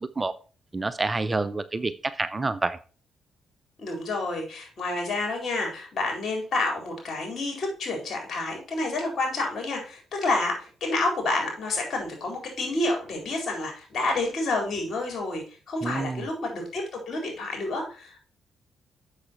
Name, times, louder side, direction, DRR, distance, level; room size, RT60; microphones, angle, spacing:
voice 1, 0.7-1.9 2.2-2.8 15.8-16.2, right 3 dB, 25° right, 14 dB, 0.6 m, -27 dB
voice 2, 3.8-18.2, left 2 dB, 55° left, 2 dB, 4.1 m, -29 dB
7.3 x 6.5 x 4.4 m, 0.37 s
supercardioid pair, 55°, 0 cm